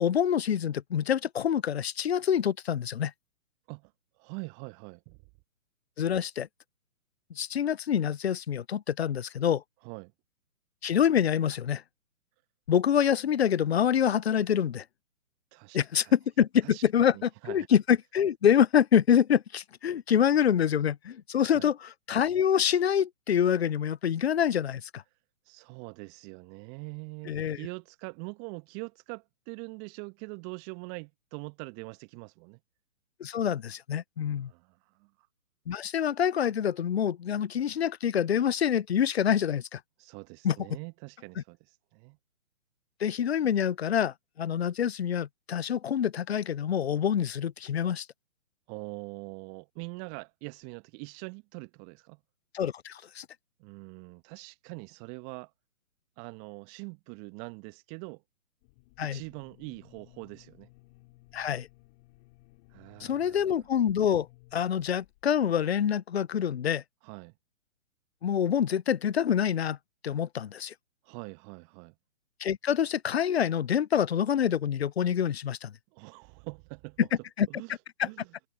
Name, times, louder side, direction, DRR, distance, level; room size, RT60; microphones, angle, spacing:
voice 1, 0.0-3.1 6.0-6.5 7.4-9.6 10.8-11.8 12.7-14.8 15.7-25.0 27.3-27.6 33.2-34.5 35.7-39.8 40.4-40.6 43.0-48.1 52.5-53.3 59.0-59.2 61.3-61.7 63.0-64.3 64.5-66.8 68.2-69.8 70.0-70.7 72.4-75.7 77.0-77.1 77.4-77.5 78.0-78.1, left 9 dB, 50° left, 0.6 m, -26 dB
voice 2, 4.2-5.2 9.8-10.1 15.5-16.1 16.6-16.8 17.1-17.7 21.5-21.7 25.5-32.6 34.3-35.1 40.0-41.6 41.9-42.2 48.7-52.2 53.6-55.5 56.2-58.2 59.0-60.7 62.7-63.4 67.0-67.3 71.0-71.9 75.9-77.0 77.5-77.7 78.0-78.3, right 37 dB, 20° right, 1.3 m, -43 dB
sound 1, 58.6-65.8, left 24 dB, 25° left, 4.5 m, -59 dB
figure-of-eight pair, 130°, 42 cm